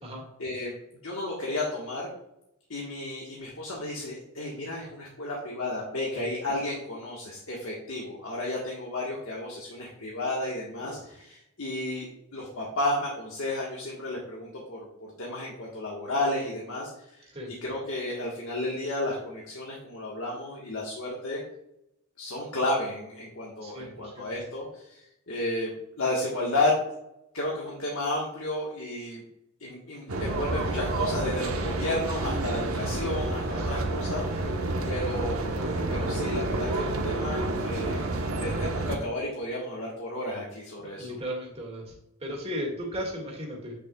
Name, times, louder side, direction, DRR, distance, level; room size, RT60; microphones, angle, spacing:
voice 1, 0.4-2.1 2.7-21.4 22.2-26.8 27.3-29.2 29.6-35.5 35.9-38.1 38.4-41.2, left 1 dB, 85° left, -4 dB, 1.4 m, -32 dB
voice 2, 23.6-24.3 33.6-33.8 40.8-41.9 42.2-43.7, equal, 30° right, -2 dB, 1.9 m, -36 dB
sound 1, 30.1-39.0, right 2 dB, 90° right, 0.9 m, -29 dB
8.5 x 6.8 x 2.3 m, 0.84 s
head